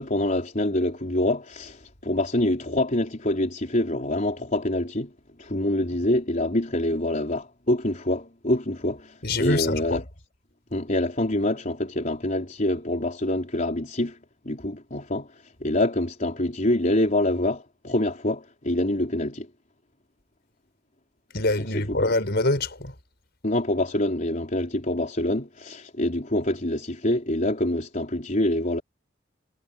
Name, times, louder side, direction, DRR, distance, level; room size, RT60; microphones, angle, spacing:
voice 1, 0.0-5.1 5.4-10.0 10.7-14.2 14.5-19.5 21.7-21.8 23.4-28.8, left 1 dB, 40° left, 4.0 m, -26 dB
voice 2, 9.2-10.0 21.3-22.9, left 2 dB, 55° left, 5.9 m, -25 dB
head